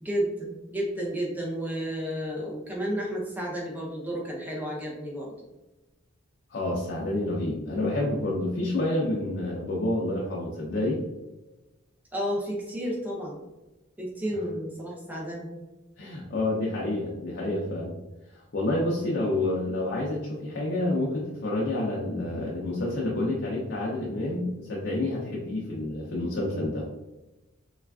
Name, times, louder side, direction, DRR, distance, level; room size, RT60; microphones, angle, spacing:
voice 1, 0.0-5.3 12.1-13.4 14.0-15.5, equal, 10° right, -3 dB, 0.5 m, -32 dB
voice 2, 6.5-11.0 16.0-18.0 18.3-26.9, left 1 dB, 55° left, -4 dB, 0.5 m, -29 dB
3.2 x 2.3 x 2.3 m, 1.1 s
head